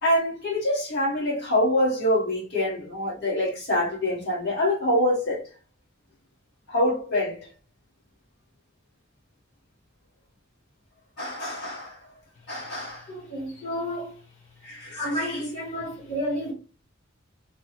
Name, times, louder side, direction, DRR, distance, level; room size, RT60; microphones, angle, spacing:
voice 1, 0.0-5.4 6.7-7.4 11.2-12.0 12.5-13.1 14.6-15.4, left 1 dB, 55° left, 1.4 m, -25 dB
voice 2, 13.1-14.1 14.9-16.5, equal, 35° left, 1.3 m, -31 dB
3.3 x 2.3 x 3.2 m
head